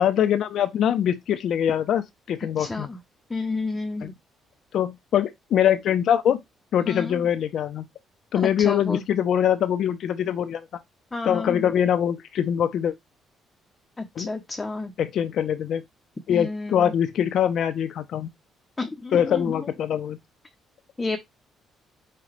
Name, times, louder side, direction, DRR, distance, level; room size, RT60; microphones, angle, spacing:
voice 1, 0.0-2.9 4.0-4.1 4.7-6.4 6.7-7.9 8.3-10.7 11.2-12.9 14.2-14.3 15.0-15.8 16.3-18.3 19.1-20.2, left 9 dB, 65° left, 0.5 m, -23 dB
voice 2, 2.6-3.0 3.3-4.1 6.9-7.2 8.6-9.0 11.1-11.6 14.0-14.9 16.3-16.9 18.8-19.7 21.0-21.2, left 3 dB, 15° left, 0.6 m, -30 dB
5.7 x 2.2 x 3.1 m
cardioid pair, 115°, 0 cm